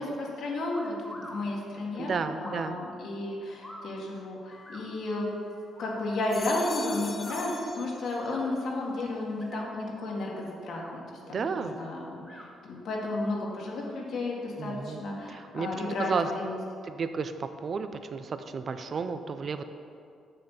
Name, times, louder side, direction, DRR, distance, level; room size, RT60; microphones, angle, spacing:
voice 1, 0.0-5.3 5.8-11.0 11.4-16.6, left 2 dB, 70° left, -3 dB, 1.8 m, -33 dB
sound 1, 0.7-1.4 2.4-2.7 3.6-3.9 4.6-4.8 5.7-6.0 7.1-7.4 8.2-8.5 9.3-9.7 10.6-11.0 12.2-12.5, equal, 5° left, 1.2 m, -45 dB
voice 2, 1.9-2.8 11.3-11.8 14.6-16.3 16.8-19.6, right 5 dB, 45° right, 9 dB, 0.5 m, -33 dB
sound 2, 4.5-5.6 6.1-8.5 8.9-9.5, left 3 dB, 30° left, 0.7 m, -43 dB
6.8 x 6.5 x 5.7 m, 2.4 s
cardioid pair, 90°, 0 cm